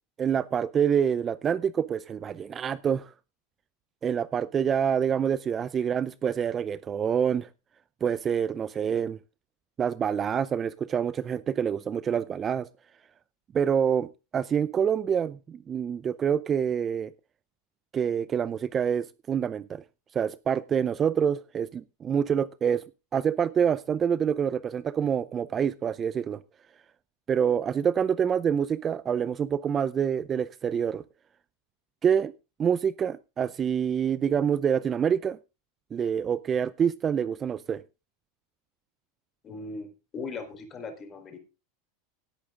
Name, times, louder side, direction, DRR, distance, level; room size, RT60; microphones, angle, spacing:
voice 1, 0.2-3.1 4.0-7.5 8.0-9.2 9.8-12.7 13.5-17.1 17.9-19.8 20.1-22.8 23.1-26.4 27.3-31.0 32.0-32.3 32.6-35.4 35.9-37.8, right 8 dB, 25° right, 17 dB, 0.5 m, -26 dB
voice 2, 39.4-41.4, left 4 dB, 30° left, 6 dB, 4.1 m, -39 dB
17.5 x 8.7 x 3.8 m, 0.30 s
supercardioid pair, 125°, 0 cm